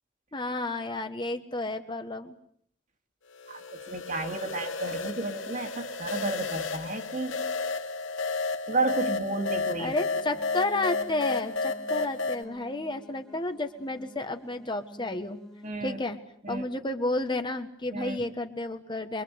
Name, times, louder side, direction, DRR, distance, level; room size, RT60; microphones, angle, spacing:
voice 1, 0.3-2.4 9.8-15.4 15.8-16.2 16.5-19.2, left 2 dB, 25° left, 7 dB, 1.4 m, -31 dB
sound 1, 3.4-12.4, left 3 dB, 75° left, 2.5 m, -32 dB
voice 2, 3.5-7.5 8.7-9.9 15.6-16.0 16.4-16.6 17.9-18.2, right 2 dB, 40° right, 5 dB, 2.4 m, -32 dB
sound 2, 9.7-15.7, equal, 5° left, 2.4 m, -50 dB
25.0 x 23.5 x 8.1 m, 0.65 s
head